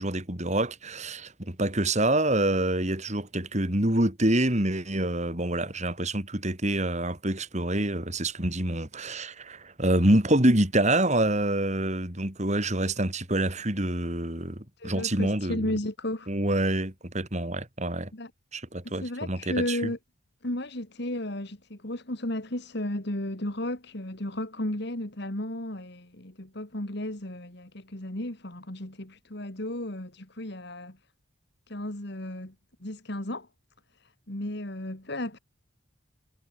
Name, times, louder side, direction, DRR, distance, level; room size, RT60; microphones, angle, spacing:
voice 1, 0.0-14.5 14.8-15.6 16.3-18.1 18.5-19.8, right 1 dB, 35° right, 3.2 m, -26 dB
voice 2, 14.8-16.3 18.1-18.3 18.8-20.0 20.4-31.0 31.7-32.5 32.8-33.5 34.0-35.4, left 1 dB, 55° left, 2.6 m, -34 dB
head